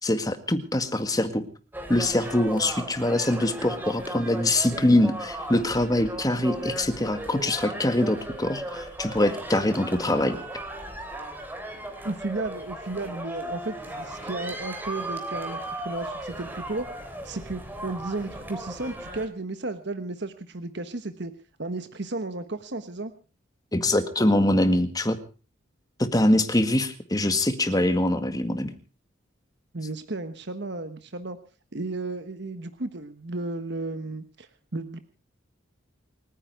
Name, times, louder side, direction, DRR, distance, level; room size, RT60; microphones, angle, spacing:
voice 1, 0.0-1.4 1.9-10.4 23.7-25.2 26.0-28.7, left 1 dB, 20° left, 9 dB, 1.8 m, -23 dB
sound 1, 1.7-19.3, right 1 dB, 10° right, 3.3 m, -36 dB
voice 2, 12.0-16.9 17.2-21.3 21.6-23.1 29.7-31.4 31.7-35.0, right 2 dB, 60° right, 9 dB, 1.3 m, -34 dB
29.0 x 10.0 x 4.8 m, 0.37 s
head